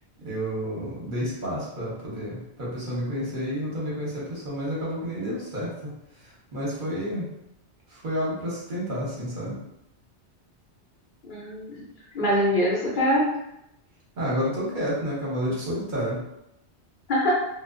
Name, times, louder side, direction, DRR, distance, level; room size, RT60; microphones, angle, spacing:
voice 1, 0.2-5.7 6.5-7.3 7.9-9.6 14.2-16.2, equal, 50° right, -6 dB, 0.9 m, -30 dB
voice 2, 11.2-11.8 12.1-13.4 17.1-17.5, equal, 55° left, -5 dB, 0.7 m, -23 dB
2.5 x 2.2 x 2.4 m, 0.83 s
omnidirectional pair, 1.2 m